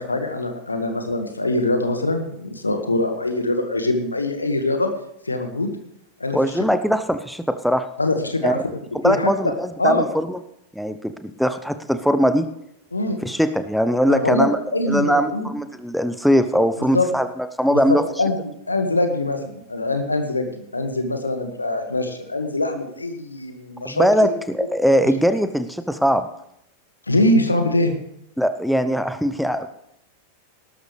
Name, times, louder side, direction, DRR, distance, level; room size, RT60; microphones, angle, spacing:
voice 1, 0.0-4.9 5.2-5.7 6.2-6.4 8.0-8.6 9.0-9.3 9.8-10.1 12.9-13.2 14.1-14.5 14.7-15.5 16.9-17.1 18.2-24.3 27.1-27.9, left 2 dB, 80° left, 6 dB, 1.7 m, -23 dB
voice 2, 6.3-7.8 8.4-8.6 8.9-10.4 10.8-12.5 13.2-14.6 14.9-17.3 17.6-18.0 23.8-26.3 28.4-29.7, equal, ahead, 10 dB, 0.8 m, -20 dB
18.5 x 12.5 x 3.3 m, 0.79 s
figure-of-eight pair, 90°, 0 cm